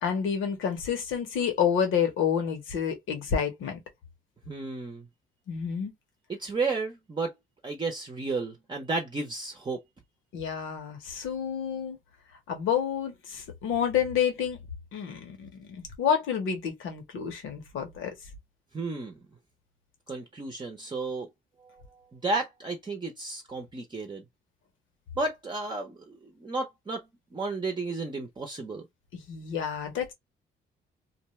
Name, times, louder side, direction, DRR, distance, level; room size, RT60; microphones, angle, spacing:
voice 1, 0.0-3.8 5.5-5.9 10.3-12.0 12.5-14.6 14.9-18.1 29.1-30.1, left 7 dB, 85° left, 1.1 m, -29 dB
voice 2, 4.5-5.1 6.3-7.3 7.6-9.8 18.7-19.2 20.1-21.3 21.6-21.8 22.1-24.2 25.2-27.1 27.3-28.9, right 3 dB, 25° right, 0.7 m, -33 dB
2.6 x 2.2 x 3.0 m
cardioid pair, 90°, 20 cm